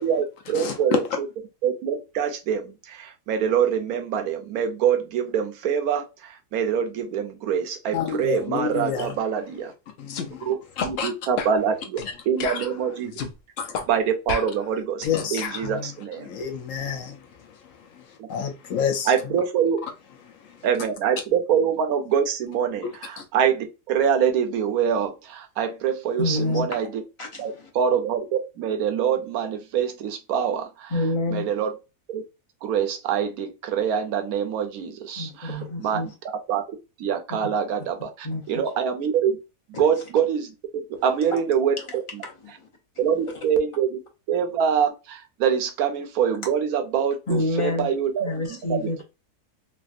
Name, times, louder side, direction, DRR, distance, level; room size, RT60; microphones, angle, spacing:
voice 1, 0.0-1.3 1.6-9.7 10.4-10.6 10.8-13.1 13.9-15.0 15.3-16.3 18.2-18.5 19.1-19.8 20.6-27.0 27.4-30.9 31.3-31.7 32.1-32.2 32.6-36.0 36.5-36.6 37.0-39.4 39.8-40.5 40.7-42.2 43.0-44.0 44.3-48.3 48.7-49.0, right 8 dB, 70° right, 1.1 m, -25 dB
voice 2, 7.9-9.1 10.0-10.5 10.8-11.1 12.6-12.7 13.6-13.8 15.0-15.9 16.2-19.1 20.3-20.6 23.2-23.3, left 7 dB, 65° left, 0.9 m, -30 dB
sound 1, 10.1-10.3 10.8-10.9 11.4-11.6 12.0-12.1 12.4-13.3 13.7-13.9 14.3-15.7, left 5 dB, 80° left, 0.5 m, -31 dB
voice 3, 26.2-26.8 27.2-27.5 30.9-31.5 35.2-36.1 38.2-38.4 41.3-41.4 41.8-41.9 42.2-42.5 47.3-47.9 48.2-49.0, left 2 dB, 30° left, 0.6 m, -27 dB
3.3 x 2.3 x 2.5 m
omnidirectional pair, 1.7 m